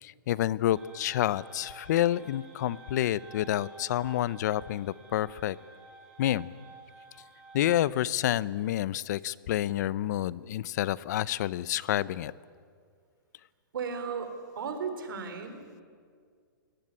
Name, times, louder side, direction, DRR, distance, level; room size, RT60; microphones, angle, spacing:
voice 1, 0.0-5.6 6.2-6.5 7.5-12.3, left 13 dB, 50° left, 20 dB, 0.6 m, -29 dB
sound 1, 0.7-7.9, right 2 dB, 5° right, 6.1 m, -52 dB
voice 2, 13.7-15.6, right 5 dB, 75° right, 8 dB, 4.0 m, -35 dB
22.5 x 18.5 x 9.8 m, 2.1 s
hypercardioid pair, 145°, 12 cm